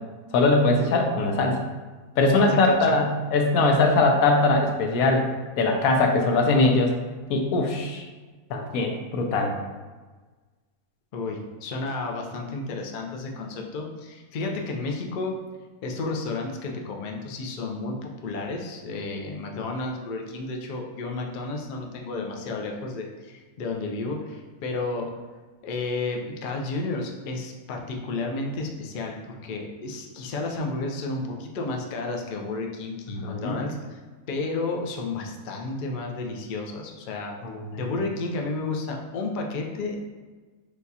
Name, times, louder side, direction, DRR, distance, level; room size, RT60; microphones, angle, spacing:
voice 1, 0.3-1.6 2.2-5.3 5.6-6.9 7.3-8.1 8.5-9.5 33.2-33.6 37.4-37.7, left 2 dB, 75° left, 3 dB, 1.0 m, -21 dB
voice 2, 2.3-2.9 11.1-15.3 15.8-25.2 25.6-34.0 34.3-37.3 37.7-40.0, left 3 dB, 90° left, 1 dB, 0.4 m, -32 dB
6.4 x 2.3 x 2.7 m, 1.3 s
omnidirectional pair, 1.6 m